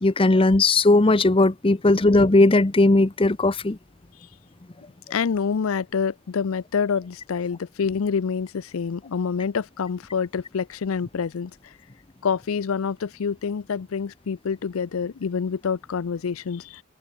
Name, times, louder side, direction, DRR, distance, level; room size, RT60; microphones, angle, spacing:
voice 1, 0.0-3.8, left 2 dB, 25° left, 0.7 m, -18 dB
voice 2, 5.1-11.5 12.2-16.8, left 6 dB, 75° left, 0.5 m, -27 dB
open air
head